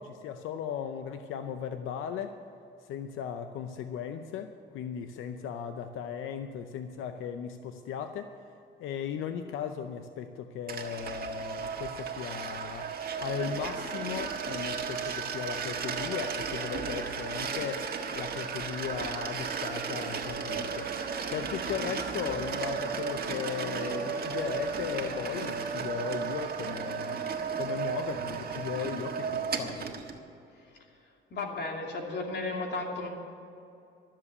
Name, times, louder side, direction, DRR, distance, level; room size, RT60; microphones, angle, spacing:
voice 1, 0.0-2.4 2.8-8.3 8.8-12.9 13.2-20.9 21.3-29.9, left 8 dB, 90° left, 8 dB, 0.7 m, -37 dB
sound 1, 10.7-30.2, right 6 dB, 50° right, 1.5 m, -34 dB
voice 2, 31.3-33.1, left 3 dB, 60° left, 1 dB, 2.7 m, -34 dB
13.0 x 7.5 x 9.6 m, 2.6 s
cardioid pair, 90°, 20 cm